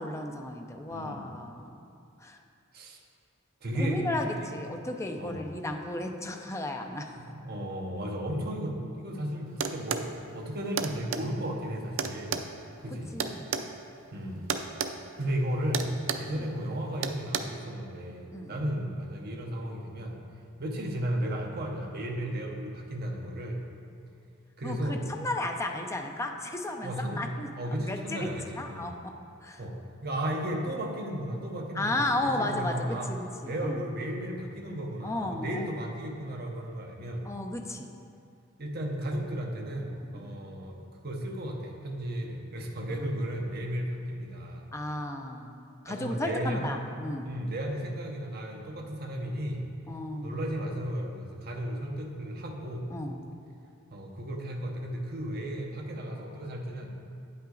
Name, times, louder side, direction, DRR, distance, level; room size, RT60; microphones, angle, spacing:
voice 1, 0.0-1.7 2.2-2.4 3.8-7.2 12.9-13.6 16.3-16.4 18.3-18.6 24.6-28.3 28.6-29.1 29.4-29.6 31.7-33.8 35.0-35.7 37.2-37.9 39.9-40.3 42.9-43.1 44.7-47.3 49.9-50.4 52.9-53.2, left 1 dB, 15° left, 3 dB, 0.5 m, -34 dB
voice 2, 0.9-1.2 2.7-3.0 3.6-4.0 4.4-4.7 5.2-5.5 7.2-12.4 12.8-13.1 14.1-14.5 15.2-15.9 16.2-20.2 20.6-23.6 24.6-25.0 26.8-28.9 29.6-29.7 30.0-33.1 33.4-37.3 38.6-44.6 45.9-46.8 47.2-49.6 50.2-52.9 53.9-56.9, right 1 dB, 50° right, 1 dB, 0.9 m, -34 dB
sound 1, 9.6-10.1 10.8-11.2 12.0-13.7 14.5-14.9 15.2-15.4 15.7-16.3 17.0-17.4, right 6 dB, 70° right, 0.4 m, -31 dB
9.1 x 5.6 x 3.8 m, 2.5 s
head